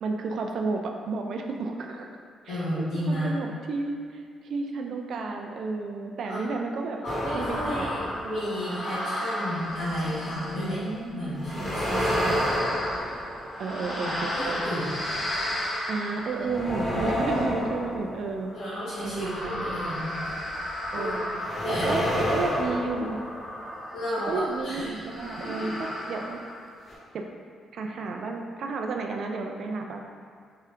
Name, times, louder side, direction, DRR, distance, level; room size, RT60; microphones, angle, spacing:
voice 1, 0.0-3.9 4.4-7.0 7.3-7.9 8.2-8.5 10.5-11.5 11.8-12.6 13.6-14.6 15.9-18.5 19.0-19.6 20.9-21.4 21.7-22.0 22.3-23.2 24.3-26.4 27.1-27.2 27.7-30.1, right 3 dB, 65° right, 3 dB, 0.3 m, -32 dB
voice 2, 2.5-3.3 6.2-6.5 7.0-10.8 11.1-12.3 14.0-14.9 17.0-17.1 18.5-20.1 20.9-21.2 21.6-22.0 23.9-24.9 25.4-25.7, equal, 85° left, -14 dB, 1.3 m, -32 dB
sound 1, 7.0-10.7 11.4-24.2 25.0-26.6 26.9-27.0, equal, 35° left, 1.3 m, -31 dB
3.5 x 2.8 x 3.4 m, 2.1 s
cardioid pair, 115°, 0 cm